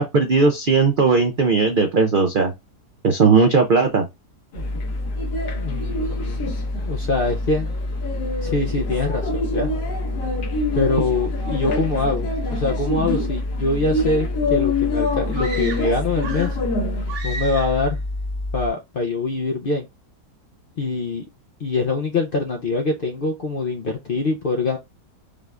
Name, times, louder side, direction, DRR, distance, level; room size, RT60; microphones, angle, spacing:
voice 1, 0.0-2.5 3.0-4.1, right 4 dB, 80° right, 0.4 m, -17 dB
sound 1, 4.5-17.1, left 3 dB, 85° left, 1.8 m, -28 dB
sound 2, 4.6-18.7, left 1 dB, 10° left, 1.0 m, -28 dB
voice 2, 5.5-6.5 6.8-7.7 8.4-9.7 10.7-16.6 17.2-18.0 18.5-19.9 20.8-21.2 21.6-24.8, left 3 dB, 55° left, 0.6 m, -24 dB
sound 3, 15.3-16.7 17.1-17.9, right 2 dB, 45° right, 1.0 m, -34 dB
5.0 x 2.4 x 3.3 m
omnidirectional pair, 1.8 m